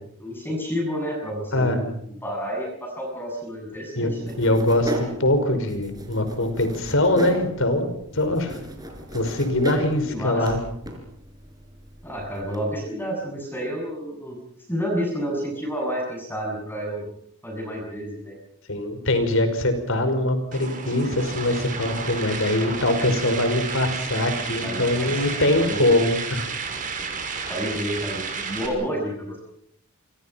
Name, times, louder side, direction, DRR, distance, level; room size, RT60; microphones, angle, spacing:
voice 1, 0.2-1.9 2.2-4.4 10.1-10.5 12.0-14.4 14.7-17.0 17.4-18.4 24.5-25.8 27.5-29.5, equal, 10° left, 0 dB, 7.6 m, -30 dB
sound 1, 4.3-12.7, right 1 dB, 15° right, 5.0 m, -36 dB
voice 2, 4.4-8.6 9.1-10.6 18.7-26.4, left 1 dB, 60° left, 9 dB, 5.2 m, -22 dB
sound 2, 20.5-28.7, right 5 dB, 35° right, 5.7 m, -32 dB
28.0 x 25.5 x 5.8 m, 0.70 s
head